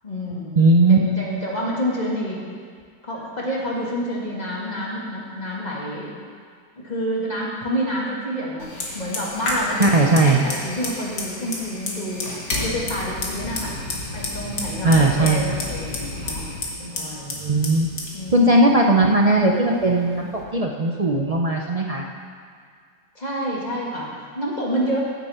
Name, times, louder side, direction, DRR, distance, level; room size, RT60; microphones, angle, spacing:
voice 1, 0.0-2.4 3.0-6.1 6.8-12.3 12.6-13.8 14.1-16.4 16.8-17.3 18.1-18.5 23.2-25.0, equal, 25° left, -5 dB, 2.2 m, -28 dB
voice 2, 0.6-1.0 9.8-10.4 14.8-15.4 17.4-17.9 18.3-22.0, right 2 dB, 70° right, 0 dB, 0.3 m, -18 dB
Fire, 8.6-20.4, left 2 dB, 70° left, 2.4 m, -31 dB
15.5 x 8.3 x 4.4 m, 2.1 s
omnidirectional pair, 1.9 m